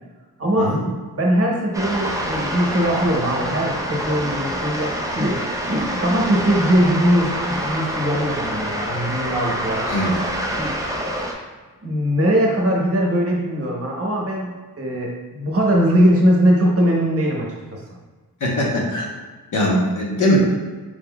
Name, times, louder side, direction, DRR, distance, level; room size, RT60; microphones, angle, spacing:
voice 1, 0.4-0.7 1.1-9.9 10.5-10.7 11.8-14.5 14.8-17.8, equal, 40° right, -2 dB, 0.9 m, -20 dB
sound 1, 1.7-11.3, equal, 10° right, 0.4 m, -26 dB
voice 2, 18.4-19.1 19.5-20.4, left 1 dB, 55° left, -2 dB, 0.9 m, -20 dB
4.5 x 3.9 x 2.2 m, 1.3 s
wide cardioid pair, 140°, 37 cm